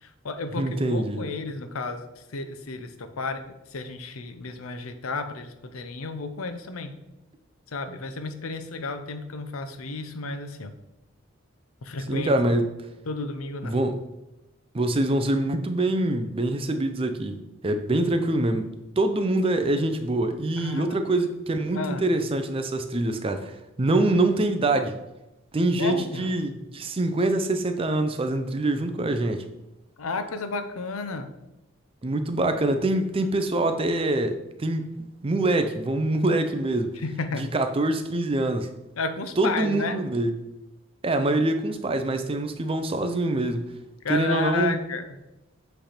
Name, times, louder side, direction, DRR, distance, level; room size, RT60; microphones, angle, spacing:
voice 1, 0.0-6.9 7.7-10.7 11.8-12.3 13.1-13.8 20.6-21.0 21.7-22.1 25.8-26.3 30.0-31.3 37.0-37.4 39.0-40.0 44.0-45.2, left 3 dB, 90° left, 9 dB, 0.7 m, -32 dB
voice 2, 0.6-1.2 12.1-12.7 13.6-14.0 14.7-17.3 17.6-18.7 19.0-25.0 25.5-29.4 32.0-34.9 35.2-37.0 37.3-38.7 39.4-40.4 41.0-43.7 44.1-44.8, right 2 dB, 25° right, 8 dB, 0.5 m, -25 dB
7.8 x 3.3 x 4.3 m, 0.96 s
head